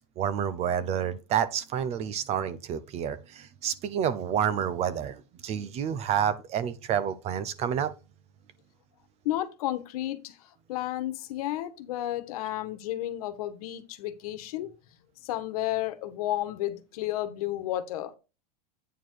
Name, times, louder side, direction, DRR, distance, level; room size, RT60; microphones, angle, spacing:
voice 1, 0.2-7.9, right 9 dB, 30° right, 0.8 m, -29 dB
voice 2, 9.2-10.4 10.7-14.7 15.2-18.1, left 14 dB, 65° left, 1.4 m, -32 dB
9.1 x 4.6 x 4.7 m
supercardioid pair, 145°, 20 cm